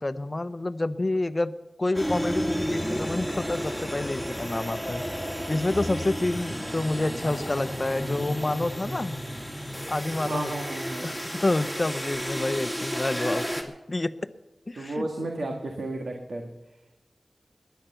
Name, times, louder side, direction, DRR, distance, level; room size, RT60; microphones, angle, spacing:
voice 1, 0.0-1.5 1.8-5.0 5.5-9.2 9.9-10.5 11.0-13.5 13.9-14.2 14.7-15.4, left 2 dB, 35° left, 12 dB, 0.8 m, -28 dB
sound 1, 1.9-13.6, equal, 10° right, 2.7 m, -32 dB
voice 2, 10.2-11.1 14.8-16.5, right 2 dB, 80° right, 2 dB, 1.8 m, -33 dB
20.0 x 10.5 x 6.9 m, 1.0 s
wide cardioid pair, 65°, 0 cm